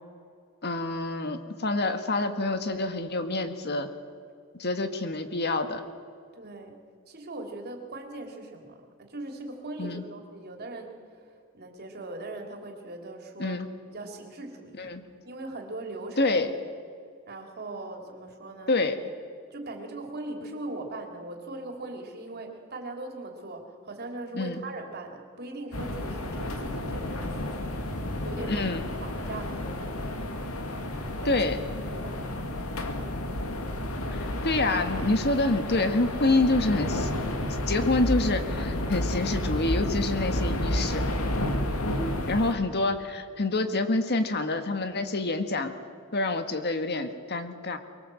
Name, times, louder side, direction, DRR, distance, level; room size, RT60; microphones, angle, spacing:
voice 1, 0.6-3.9 4.6-5.8 9.8-10.0 13.4-13.7 14.8-15.1 16.2-16.5 18.7-19.0 24.3-24.6 28.5-28.8 31.3-31.6 34.1-37.1 37.7-41.0 42.3-45.7 46.1-47.8, left 2 dB, 50° left, 8 dB, 1.7 m, -27 dB
voice 2, 6.3-6.8 7.1-13.6 13.9-14.9 15.2-16.4 17.3-18.8 19.5-28.7 29.0-30.2 31.2-31.4 31.9-32.2, right 2 dB, 50° right, 2 dB, 3.3 m, -40 dB
sound 1, 25.7-42.5, left 1 dB, 85° left, 2.3 m, -31 dB
23.5 x 22.5 x 7.8 m, 2.2 s
head